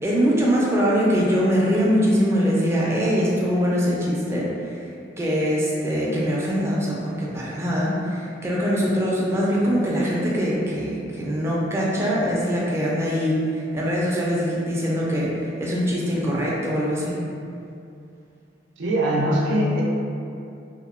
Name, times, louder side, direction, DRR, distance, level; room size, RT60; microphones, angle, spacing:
voice 1, 0.0-4.5 5.2-17.2, equal, 15° right, -6 dB, 0.4 m, -22 dB
voice 2, 18.8-19.8, equal, 85° right, -3 dB, 0.5 m, -21 dB
2.8 x 2.1 x 2.4 m, 2.5 s
head